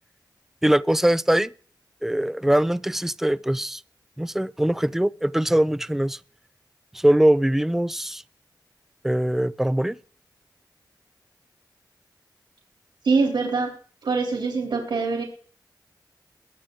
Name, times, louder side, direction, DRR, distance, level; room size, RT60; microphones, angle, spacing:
voice 1, 0.6-1.5 2.0-3.8 4.2-6.2 6.9-8.2 9.0-10.0, right 1 dB, 5° right, 0.6 m, -22 dB
voice 2, 13.0-13.7 14.0-15.2, right 4 dB, 85° right, 3.4 m, -23 dB
21.5 x 7.4 x 3.9 m
cardioid pair, 45°, 8 cm